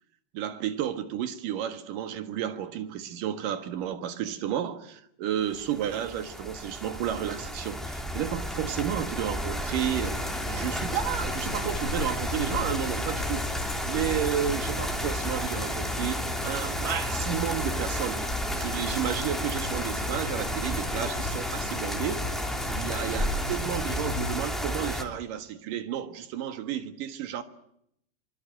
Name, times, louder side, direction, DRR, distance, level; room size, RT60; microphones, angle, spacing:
voice 1, 0.3-13.4 13.9-18.3 18.5-22.3 22.7-27.4, right 10 dB, 65° right, 3.1 m, -32 dB
sound 1, 5.5-25.0, equal, ahead, 2.3 m, -32 dB
sound 2, 9.5-24.6, left 6 dB, 50° left, 2.1 m, -38 dB
26.0 x 25.5 x 7.8 m
omnidirectional pair, 4.4 m